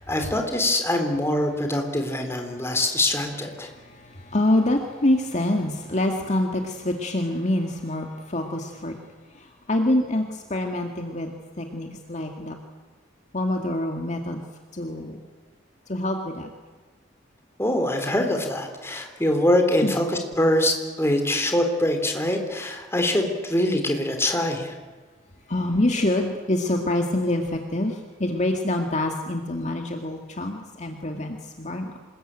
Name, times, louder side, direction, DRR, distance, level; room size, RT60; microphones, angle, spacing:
voice 1, 0.0-3.7 17.6-24.7, left 1 dB, 15° left, 4 dB, 3.7 m, -24 dB
voice 2, 3.6-9.0 9.3-12.6 13.3-14.4 14.7-15.2 15.9-16.5 19.8-19.9 25.5-32.0, left 1 dB, 40° left, 3 dB, 2.1 m, -26 dB
27.0 x 21.0 x 9.0 m, 1.3 s
head